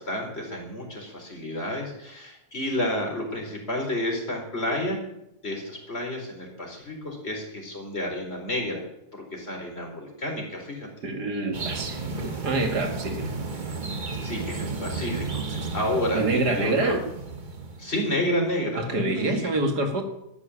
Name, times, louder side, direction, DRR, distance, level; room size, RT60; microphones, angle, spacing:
voice 1, 0.0-5.0 5.4-8.8 9.1-10.9 14.2-17.0 17.8-19.5, left 1 dB, 40° left, 1 dB, 4.6 m, -30 dB
voice 2, 11.0-13.3 16.1-17.0 18.8-20.0, right 2 dB, 90° right, 5 dB, 2.6 m, -26 dB
sound 1, 11.5-18.4, right 4 dB, 30° right, 1.3 m, -33 dB
13.5 x 9.7 x 9.8 m, 0.83 s
omnidirectional pair, 1.7 m